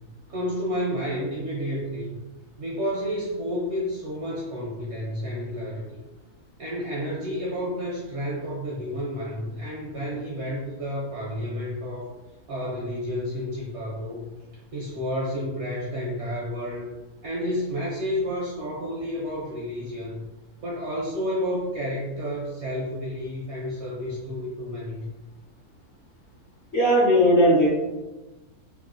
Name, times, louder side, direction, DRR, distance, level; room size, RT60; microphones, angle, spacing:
voice 1, 0.3-2.2 2.6-6.0 6.6-12.1 12.5-14.3 14.7-16.9 17.2-20.3 20.6-25.1, equal, 70° right, -4 dB, 0.7 m, -30 dB
voice 2, 26.7-27.7, equal, 55° left, -5 dB, 0.9 m, -17 dB
2.9 x 2.1 x 2.4 m, 1.1 s
omnidirectional pair, 1.6 m